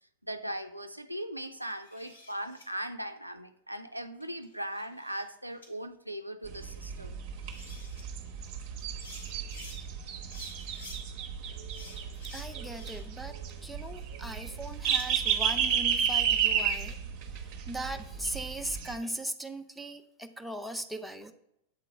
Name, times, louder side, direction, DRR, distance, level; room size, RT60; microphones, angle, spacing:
voice 1, 0.2-7.1, right 1 dB, 90° right, 7 dB, 0.4 m, -39 dB
sound 1, 1.6-2.7 4.2-5.3 5.6-5.7 7.1-7.2 7.4-8.0 8.8-9.8 10.3-11.0 11.7-13.2 13.6-15.1, left 2 dB, 75° left, 1.9 m, -51 dB
sound 2, 6.5-18.9, right 8 dB, 45° right, 0.8 m, -32 dB
voice 2, 12.3-17.0 17.3-21.3, right 1 dB, ahead, 6 dB, 0.5 m, -39 dB
8.4 x 3.8 x 4.4 m, 0.80 s
figure-of-eight pair, 90°, 0 cm